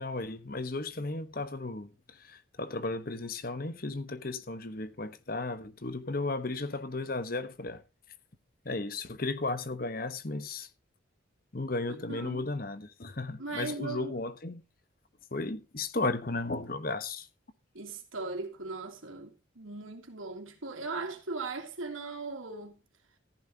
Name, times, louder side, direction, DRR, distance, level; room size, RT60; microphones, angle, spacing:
voice 1, 0.0-7.8 8.6-10.7 11.5-14.6 15.3-17.3, left 2 dB, 45° left, 1.1 m, -35 dB
voice 2, 12.1-12.4 13.4-14.1 17.7-22.8, right 3 dB, 90° right, 2.9 m, -38 dB
14.5 x 11.0 x 2.8 m
head